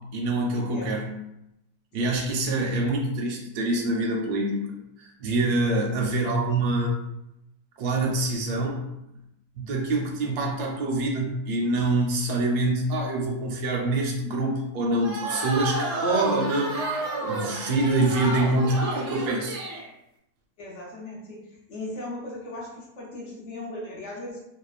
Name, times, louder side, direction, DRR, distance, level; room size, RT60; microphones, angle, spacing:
voice 1, 0.1-1.1 1.9-4.6 5.0-7.0 7.8-8.8 9.6-16.8 17.2-19.6, right 2 dB, 80° right, -1 dB, 1.1 m, -25 dB
sound 1, 15.0-19.9, right 2 dB, 65° right, 0.7 m, -31 dB
voice 2, 20.6-21.4 21.7-24.4, left 1 dB, 65° left, -3 dB, 0.7 m, -38 dB
2.9 x 2.1 x 2.3 m, 0.85 s
omnidirectional pair, 1.7 m